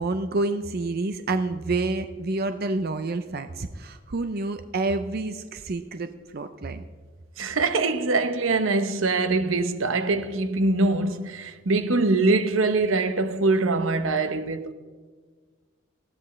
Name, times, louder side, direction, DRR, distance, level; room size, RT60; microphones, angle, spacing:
voice 1, 0.0-6.8, right 2 dB, 50° right, 0.6 m, -28 dB
voice 2, 7.4-14.7, right 3 dB, 80° right, 0.9 m, -23 dB
19.5 x 15.0 x 3.2 m
head